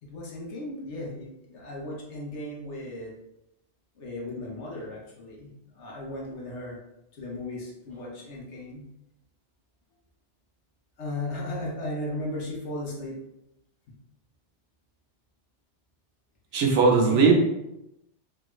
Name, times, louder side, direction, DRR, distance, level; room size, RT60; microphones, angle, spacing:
voice 1, 0.0-3.1 4.0-6.8 7.1-8.9 11.0-13.2 13.9-14.0 17.0-17.3, left 1 dB, 80° left, -3 dB, 1.2 m, -36 dB
voice 2, 16.5-17.3, right 5 dB, 85° right, 1 dB, 1.0 m, -19 dB
3.3 x 2.3 x 3.0 m, 0.85 s
omnidirectional pair, 1.2 m